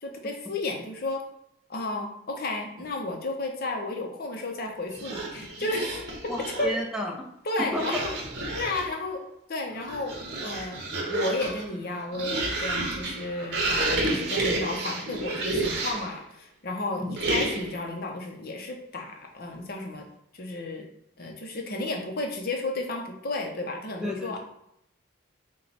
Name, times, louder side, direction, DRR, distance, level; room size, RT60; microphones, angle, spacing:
voice 1, 0.0-1.2 1.7-5.9 6.6-6.8 7.4-8.1 8.5-20.1 20.3-20.9 21.2-24.4, left 2 dB, 50° left, 2 dB, 0.6 m, -33 dB
sound 1, 4.9-6.8 7.7-9.0 9.7-16.2 17.2-17.8, right 2 dB, 55° right, 0.8 m, -30 dB
voice 2, 6.3-7.1 7.7-8.3 16.9-17.2 24.0-24.4, left 1 dB, 5° right, 0 dB, 0.5 m, -31 dB
4.4 x 2.2 x 4.0 m, 0.77 s
head